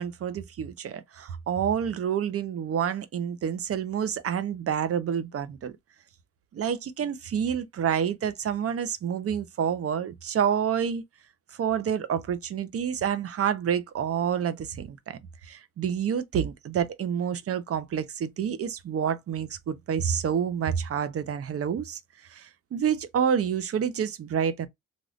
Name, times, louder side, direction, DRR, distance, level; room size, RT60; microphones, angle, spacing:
voice 1, 0.0-5.7 6.5-11.0 11.6-22.0 22.3-24.7, right 8 dB, 50° right, 0.7 m, -28 dB
3.5 x 2.5 x 2.4 m
cardioid pair, 90°, 30 cm